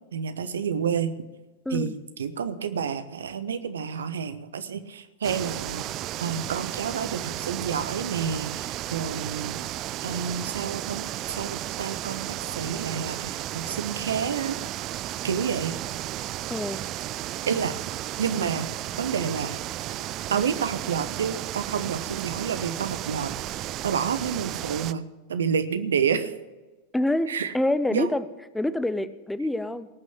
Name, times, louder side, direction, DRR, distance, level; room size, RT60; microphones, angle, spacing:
voice 1, 0.1-1.1 1.7-1.9 2.2-5.9 6.2-9.6 10.0-14.6 15.2-15.7 17.4-17.8 18.2-18.7 19.0-19.6 20.3-23.3 23.8-26.3 27.3-27.5 27.9-28.1, right 7 dB, 65° right, 11 dB, 1.0 m, -29 dB
sound 1, 5.2-24.9, right 14 dB, 35° right, 0.4 m, -33 dB
voice 2, 16.5-16.8 26.9-28.2 28.5-29.9, left 1 dB, 5° left, 14 dB, 0.6 m, -26 dB
18.5 x 6.2 x 8.6 m, 1.2 s
figure-of-eight pair, 90°, 0 cm